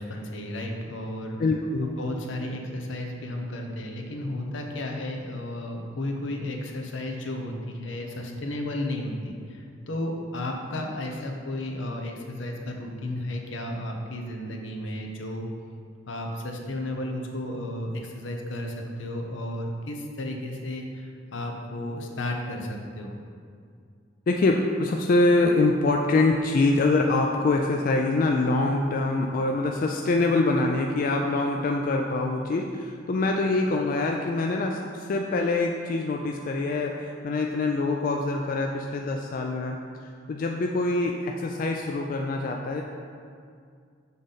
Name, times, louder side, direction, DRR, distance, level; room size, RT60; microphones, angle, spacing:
voice 1, 0.0-1.4 2.0-15.5 16.1-23.2, left 1 dB, 75° left, 2 dB, 0.7 m, -33 dB
voice 2, 1.4-1.9 24.3-39.8 40.3-42.8, left 2 dB, 45° left, 2 dB, 0.3 m, -24 dB
6.8 x 3.8 x 4.0 m, 2.2 s
head